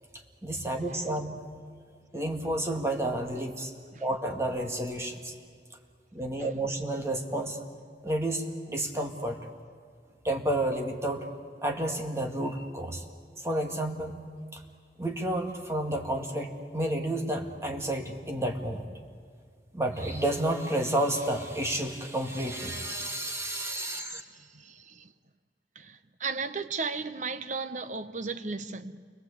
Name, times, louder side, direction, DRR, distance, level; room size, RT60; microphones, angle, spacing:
voice 1, 0.4-1.3 2.1-3.7 4.0-5.3 6.1-7.6 8.0-9.4 10.2-11.3 11.6-13.0 13.4-14.2 14.5-14.6 15.0-18.9 19.7-24.2, right 1 dB, 15° right, 2.0 m, -30 dB
voice 2, 24.2-25.1 25.8-29.0, right 4 dB, 45° right, 0.9 m, -35 dB
29.5 x 22.0 x 8.3 m
head